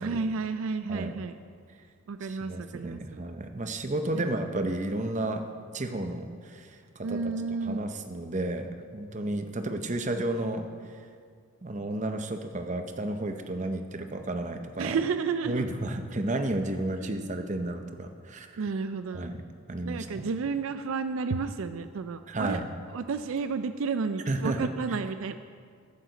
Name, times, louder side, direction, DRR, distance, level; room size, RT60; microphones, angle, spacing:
voice 1, 0.0-1.4 2.1-3.2 4.1-4.3 7.0-7.8 14.8-15.7 17.0-17.2 18.6-19.3 19.8-22.6 22.9-25.3, right 5 dB, 70° right, 10 dB, 0.4 m, -31 dB
voice 2, 2.2-5.5 5.7-7.2 7.6-10.7 11.6-15.0 15.5-18.6 19.1-19.4 19.7-20.3 22.3-22.7 24.3-24.7, right 2 dB, 35° right, 7 dB, 0.7 m, -32 dB
14.0 x 9.1 x 4.0 m, 2.1 s
head